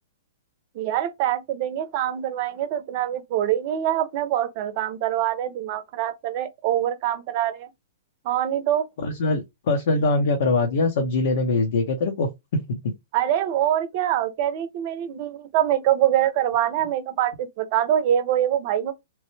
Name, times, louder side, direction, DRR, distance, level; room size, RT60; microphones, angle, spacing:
voice 1, 0.7-7.7 8.2-8.9 13.1-18.9, right 11 dB, 50° right, 0.6 m, -24 dB
voice 2, 9.0-12.3 12.7-12.9, left 3 dB, 65° left, 0.8 m, -23 dB
3.1 x 2.1 x 3.0 m
hypercardioid pair, 120°, 0 cm